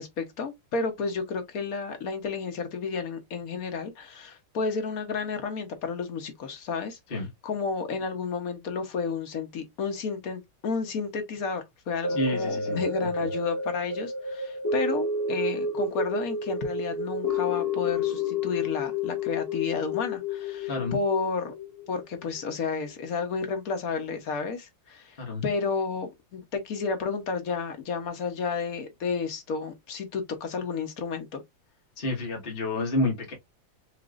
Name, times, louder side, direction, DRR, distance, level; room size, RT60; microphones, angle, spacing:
voice 1, 0.0-21.5 21.9-31.4, left 5 dB, 60° left, 1.1 m, -31 dB
sound 1, 12.0-22.4 22.9-23.0, left 3 dB, 15° left, 0.7 m, -30 dB
voice 2, 12.1-12.8 13.2-13.3 20.7-21.0 25.2-25.4 32.0-33.3, left 2 dB, 35° left, 1.3 m, -29 dB
5.0 x 2.9 x 2.4 m
omnidirectional pair, 2.1 m